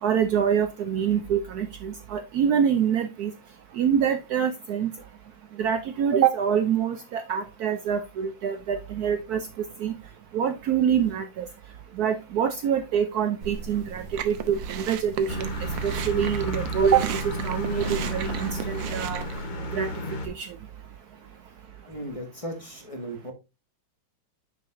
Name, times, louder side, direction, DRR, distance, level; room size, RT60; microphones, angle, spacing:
voice 1, 0.0-3.3 3.7-4.9 5.6-9.4 9.8-9.9 10.3-11.5 12.0-15.5 15.8-19.2 19.7-19.9 20.3-20.5, right 8 dB, 65° right, 9 dB, 1.0 m, -25 dB
Chewing mastication, 13.4-19.4, right 8 dB, 90° right, 1.5 m, -35 dB
sound 1, 15.3-20.3, right 1 dB, 35° left, 0.9 m, -32 dB
voice 2, 21.9-23.3, equal, 20° left, 2 dB, 1.4 m, -36 dB
6.7 x 6.6 x 2.5 m, 0.25 s
omnidirectional pair, 2.0 m